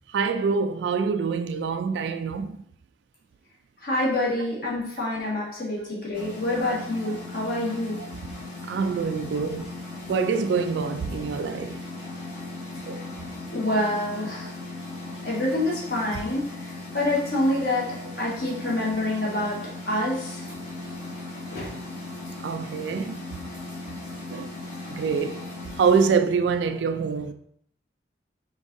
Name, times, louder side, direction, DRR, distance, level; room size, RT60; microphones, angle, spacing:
voice 1, 0.1-2.6 7.0-7.2 8.0-8.1 8.7-9.7 10.1-11.8 12.9-13.0 16.1-16.2 17.5-17.7 18.1-18.3 18.6-18.7 22.4-23.3 24.3-24.5 24.9-25.4 25.7-27.3, right 5 dB, 85° right, 0.3 m, -26 dB
voice 2, 3.8-8.0 13.5-14.5 15.2-16.5 16.9-17.9 18.2-19.6 19.9-20.5 21.5-21.7, left 1 dB, 55° left, 1.5 m, -26 dB
sound 1, 6.1-26.1, left 2 dB, 90° left, 1.8 m, -38 dB
5.3 x 3.5 x 2.6 m
head